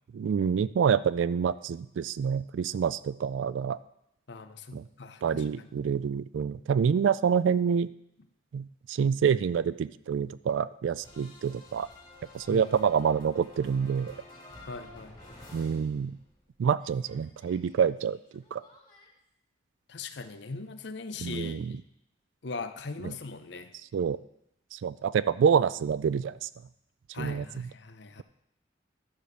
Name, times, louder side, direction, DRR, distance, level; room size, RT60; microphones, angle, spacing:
voice 1, 0.1-3.8 4.7-4.8 5.2-7.9 8.5-11.9 12.3-14.1 15.5-16.1 16.6-18.6 21.2-21.7 23.0-23.1 23.9-24.2 24.7-26.5 27.2-27.4, right 7 dB, 80° right, 16 dB, 0.3 m, -27 dB
voice 2, 4.3-5.7 12.5-12.7 14.6-15.2 19.9-21.8 22.4-23.7 27.1-28.2, left 4 dB, 65° left, 9 dB, 0.7 m, -40 dB
sound 1, 11.0-16.5 16.7-19.1, left 2 dB, 20° left, 2.4 m, -52 dB
11.5 x 5.0 x 6.6 m, 0.80 s
head